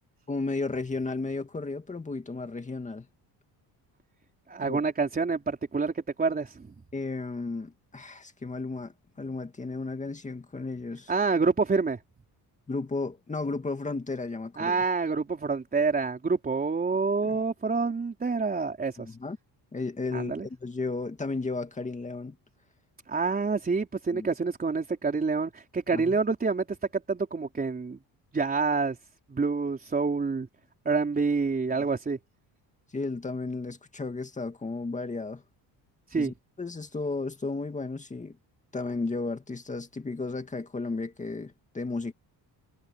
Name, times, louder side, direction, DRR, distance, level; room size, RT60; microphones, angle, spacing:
voice 1, 0.3-3.1 4.6-4.8 6.9-11.1 12.7-14.8 17.2-17.4 19.0-19.4 19.7-22.4 24.1-24.3 25.9-26.2 31.7-31.9 32.9-35.4 36.2-38.4 38.7-42.1, left 3 dB, 20° left, 2.1 m, -34 dB
voice 2, 4.5-6.8 11.1-12.0 14.6-19.2 20.1-20.5 23.1-28.0 28.3-29.0 29.3-30.5 30.8-32.2 36.1-36.3, right 4 dB, 20° right, 4.1 m, -27 dB
cardioid pair, 140°, 40 cm